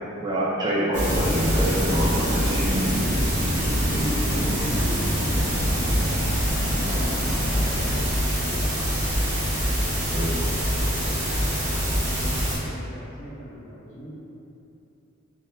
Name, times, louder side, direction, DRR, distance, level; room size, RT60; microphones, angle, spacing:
voice 1, 0.2-3.0 10.1-10.4, right 1 dB, 20° right, -7 dB, 0.3 m, -26 dB
sound 1, 0.9-12.6, equal, 35° right, 1.1 m, -25 dB
sound 2, 1.0-8.0, equal, 60° right, 0.7 m, -29 dB
voice 2, 3.8-6.0 6.7-8.8 10.2-11.1 11.9-14.1, equal, 35° left, -8 dB, 0.7 m, -39 dB
sound 3, 4.2-7.3, right 1 dB, 85° left, 0.6 m, -38 dB
3.5 x 2.4 x 2.6 m, 2.8 s
head